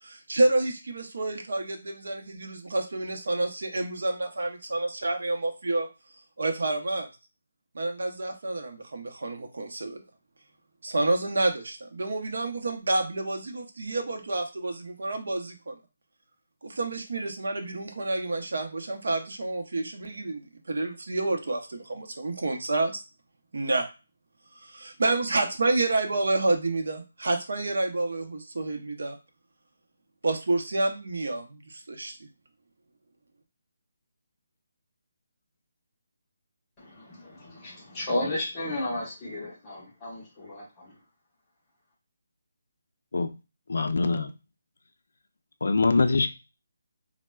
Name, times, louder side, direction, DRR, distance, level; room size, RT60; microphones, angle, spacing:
voice 1, 0.0-5.9 6.4-7.1 7.7-10.0 10.8-15.8 16.6-23.0 23.5-23.9 24.6-29.2 30.2-32.2, right 2 dB, 65° right, 3 dB, 0.7 m, -29 dB
voice 2, 36.8-41.0, left 1 dB, 10° left, -6 dB, 0.8 m, -33 dB
voice 3, 43.7-44.3 45.6-46.3, left 3 dB, 60° left, 7 dB, 0.3 m, -23 dB
4.1 x 2.1 x 2.2 m, 0.29 s
hypercardioid pair, 180°, 0 cm